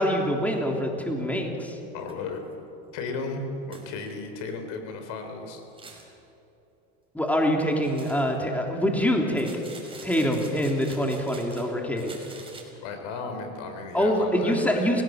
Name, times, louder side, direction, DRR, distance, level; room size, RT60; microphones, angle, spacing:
voice 1, 0.0-1.8 7.1-9.5 10.0-12.2 13.9-15.0, equal, 5° left, 1 dB, 3.3 m, -25 dB
sound 1, 1.4-1.5 2.0-2.1 2.5-2.6 3.0-3.1 3.7-4.1 5.6-6.1 7.8-8.4 9.3-11.7 12.0-12.6, right 3 dB, 15° right, 5.7 m, -46 dB
voice 2, 1.9-2.4 2.9-5.6 12.8-15.0, left 4 dB, 65° left, 6 dB, 4.2 m, -35 dB
29.5 x 17.0 x 7.6 m, 2.9 s
supercardioid pair, 110°, 32 cm